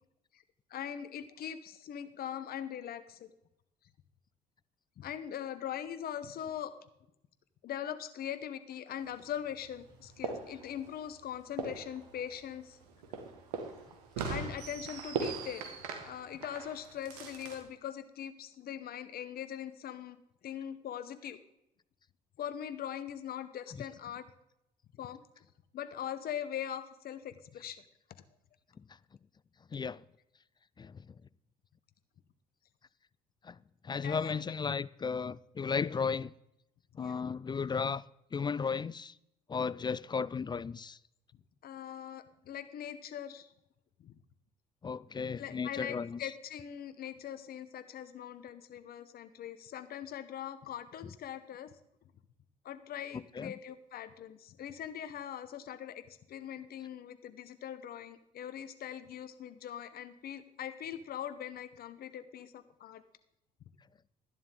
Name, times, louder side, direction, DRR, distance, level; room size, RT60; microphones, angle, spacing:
voice 1, 0.7-3.3 5.0-6.7 7.6-12.8 14.3-15.8 16.0-20.2 20.4-21.4 22.4-24.3 25.0-25.2 25.7-27.8 34.0-34.4 37.0-37.3 41.6-43.5 44.0-44.1 45.4-51.7 52.6-63.0, left 10 dB, 50° left, 0.9 m, -41 dB
sound 1, 9.0-17.6, right 5 dB, 85° right, 1.8 m, -41 dB
voice 2, 29.7-30.0 30.8-31.1 33.4-33.6 33.8-36.3 37.0-38.0 38.3-39.1 39.5-41.0 44.8-46.2 53.1-53.5, left 5 dB, 25° left, 0.4 m, -34 dB
12.5 x 11.0 x 3.8 m
hypercardioid pair, 60°, 20 cm